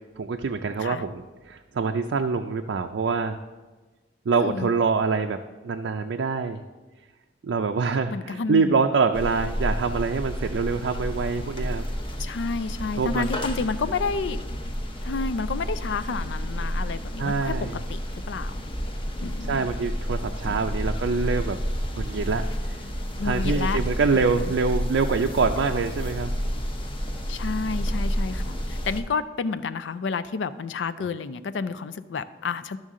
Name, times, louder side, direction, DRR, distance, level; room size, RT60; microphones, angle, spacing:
voice 1, 0.2-3.4 4.3-5.4 5.6-6.6 7.4-11.9 13.0-13.3 17.2-17.8 19.5-21.6 22.0-22.8 23.2-26.4 31.0-31.1, right 4 dB, 80° right, 5 dB, 0.4 m, -25 dB
voice 2, 4.3-4.7 8.1-8.7 12.2-14.4 15.0-17.5 17.9-18.0 18.3-18.6 19.2-19.7 20.5-20.8 23.2-23.8 24.1-24.6 27.3-32.8, left 4 dB, 90° left, 12 dB, 0.4 m, -30 dB
sound 1, 9.1-29.0, equal, 30° left, 0.8 m, -30 dB
12.5 x 6.4 x 3.7 m, 1.3 s
head